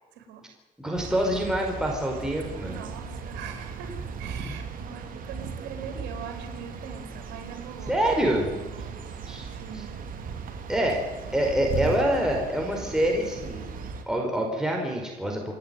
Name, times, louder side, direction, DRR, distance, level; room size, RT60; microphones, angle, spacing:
voice 1, 0.1-0.4 2.6-8.0 8.4-9.0 9.5-10.0, right 7 dB, 85° right, 5 dB, 4.5 m, -42 dB
voice 2, 0.8-2.8 4.4-4.5 7.9-8.5 9.3-9.5 10.7-11.0 11.3-13.7 14.1-15.6, right 1 dB, 5° right, 0 dB, 5.0 m, -26 dB
sound 1, 1.0-14.0, right 5 dB, 55° right, 3.0 m, -37 dB
28.5 x 10.5 x 9.3 m, 1.1 s
cardioid pair, 110°, 17 cm